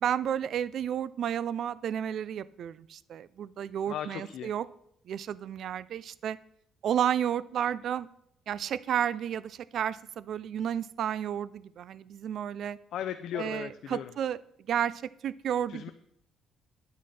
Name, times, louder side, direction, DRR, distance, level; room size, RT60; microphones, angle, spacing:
voice 1, 0.0-4.7 5.1-6.4 6.8-8.1 8.5-12.8 13.3-14.4 14.7-15.8, right 9 dB, 55° right, 18 dB, 0.3 m, -32 dB
voice 2, 3.9-4.5 12.9-14.2 15.7-15.9, left 10 dB, 65° left, 9 dB, 0.5 m, -37 dB
9.5 x 9.4 x 4.2 m, 0.72 s
cardioid pair, 150°, 0 cm